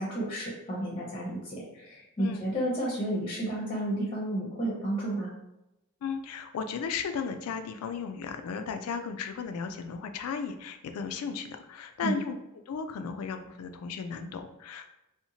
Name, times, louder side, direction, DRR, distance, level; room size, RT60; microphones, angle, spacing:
voice 1, 0.0-5.3 12.0-12.2, right 1 dB, 25° left, -4 dB, 0.6 m, -31 dB
voice 2, 6.0-12.3 12.7-14.9, left 6 dB, 75° left, 8 dB, 0.3 m, -35 dB
2.7 x 2.1 x 2.7 m, 0.91 s
head